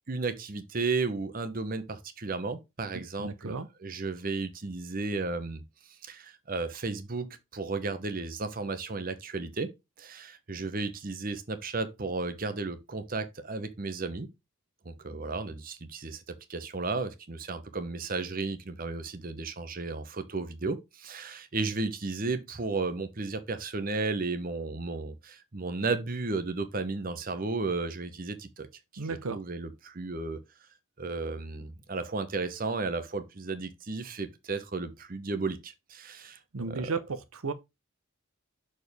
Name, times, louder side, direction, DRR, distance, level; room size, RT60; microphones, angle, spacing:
voice 1, 0.1-5.6 6.0-9.7 10.0-14.3 14.8-28.7 28.9-30.4 31.0-36.4 36.7-36.9, right 3 dB, 40° right, 0.8 m, -34 dB
voice 2, 2.9-3.7 29.0-29.4 36.5-37.5, right 4 dB, 80° right, 0.8 m, -34 dB
6.4 x 4.4 x 3.4 m
head